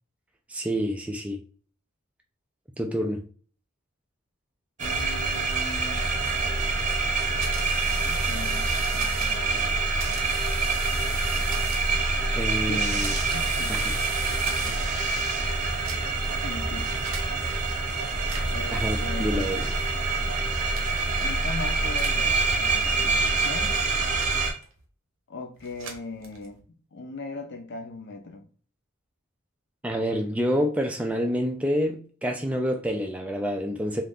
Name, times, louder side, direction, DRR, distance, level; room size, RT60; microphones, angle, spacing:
voice 1, 0.5-1.4 2.8-3.2 12.3-13.1 13.7-13.9 18.7-19.7 29.8-34.0, equal, 5° right, 0.3 m, -28 dB
voice 2, 4.8-6.0 8.0-9.8 12.7-12.8 13.2-14.0 16.3-16.9 18.5-19.7 21.2-23.8 25.3-28.5, left 3 dB, 55° left, 0.5 m, -39 dB
sound 1, 4.8-24.5, right 3 dB, 35° right, 0.7 m, -26 dB
sound 2, 7.2-9.5 10.0-12.1 12.7-15.0 15.7-16.3 17.0-17.3 18.2-18.7 19.6-19.9 20.7-21.1 21.9-22.3 23.1-24.8 25.6-26.6, right 4 dB, 80° right, 0.8 m, -39 dB
2.5 x 2.4 x 3.5 m
head